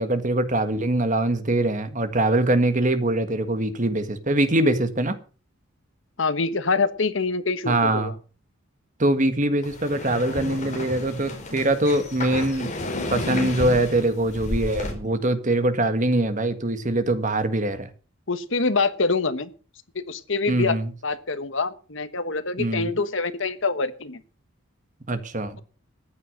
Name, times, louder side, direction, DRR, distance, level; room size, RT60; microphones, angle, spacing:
voice 1, 0.0-5.2 7.6-8.1 9.0-12.7 13.1-17.9 20.5-20.9 22.6-22.9 25.1-25.6, right 1 dB, 40° right, 1.6 m, -23 dB
voice 2, 6.2-8.1 18.3-19.5 19.9-20.8 21.0-24.2, left 4 dB, 60° left, 1.3 m, -25 dB
sound 1, 9.6-14.9, left 2 dB, 35° left, 4.2 m, -32 dB
14.5 x 9.8 x 6.4 m
head